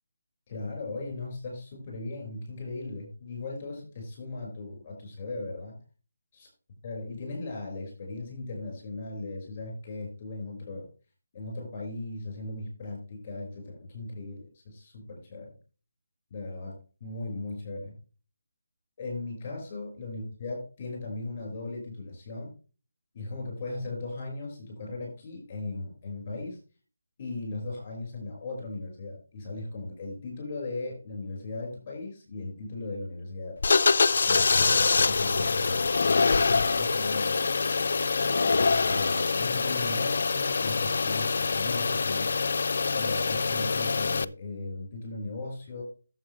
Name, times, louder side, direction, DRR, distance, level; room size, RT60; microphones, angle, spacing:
voice 1, 0.5-5.8 6.3-6.5 6.8-10.9 11.3-15.5 16.3-16.8 17.0-17.9 19.0-22.5 23.1-26.6 27.2-33.6 34.2-37.4 38.5-42.3 42.9-45.8, left 2 dB, 25° left, 1 dB, 5.3 m, -37 dB
sound 1, 33.6-44.2, left 4 dB, 55° left, 0.4 m, -25 dB
11.5 x 7.5 x 3.3 m, 0.36 s
figure-of-eight pair, 170°, 0 cm